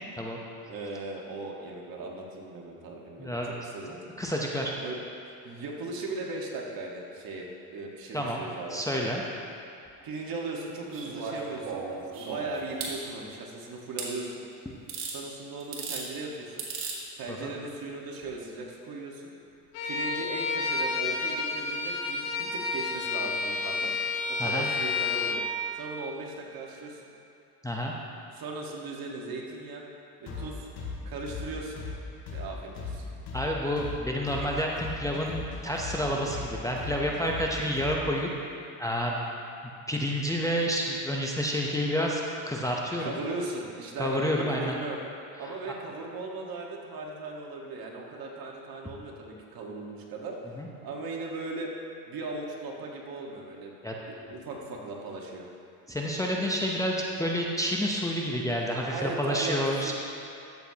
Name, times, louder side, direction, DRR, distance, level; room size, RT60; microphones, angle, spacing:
voice 1, 0.7-4.0 4.8-5.0 5.4-9.0 10.0-14.4 15.0-16.7 17.2-19.3 19.8-23.9 24.3-25.4 25.7-27.1 28.3-29.8 30.2-30.7 31.1-31.9 32.3-33.0 43.0-45.0 45.4-50.4 50.8-51.7 52.1-53.7 54.1-55.5 58.9-59.9, right 3 dB, 55° right, -1 dB, 1.6 m, -38 dB
voice 2, 3.2-3.5 4.2-4.8 8.1-8.4 8.7-9.2 17.3-17.5 24.4-24.7 27.6-28.0 33.3-38.3 38.8-39.1 39.9-43.2 44.0-44.8 50.6-50.7 53.8-53.9 55.9-59.9, equal, 10° left, -2 dB, 0.7 m, -29 dB
sound 1, 10.9-13.0 14.0-14.1 14.9-15.2 15.6-16.0 16.6-17.0 18.2-18.3, right 5 dB, 70° right, 2.0 m, -36 dB
Bowed string instrument, 19.7-25.5, left 4 dB, 85° left, 1.2 m, -30 dB
sound 2, 30.3-38.2, left 4 dB, 60° left, 2.0 m, -38 dB
12.5 x 8.0 x 2.9 m, 2.5 s
supercardioid pair, 100°, 43 cm